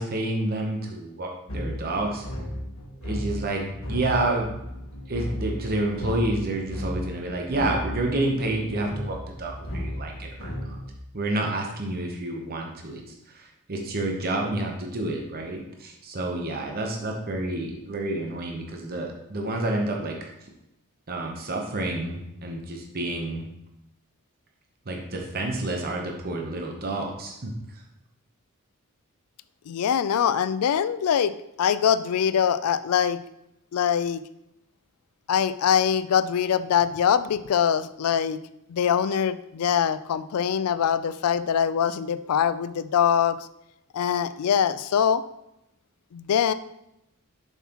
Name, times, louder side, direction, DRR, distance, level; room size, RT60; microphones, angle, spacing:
voice 1, 0.0-2.3 3.0-3.6 3.9-4.5 5.1-10.8 11.1-13.0 13.3-20.3 21.1-23.5 24.9-27.5, right 2 dB, 45° right, 1 dB, 0.8 m, -29 dB
sound 1, 1.5-10.9, equal, 65° left, 1.2 m, -35 dB
voice 2, 29.7-31.3 31.6-33.2 33.7-34.2 35.3-38.4 38.7-43.4 43.9-45.2 46.1-46.5, left 8 dB, 85° left, 14 dB, 0.4 m, -23 dB
7.1 x 5.8 x 2.9 m, 0.84 s
head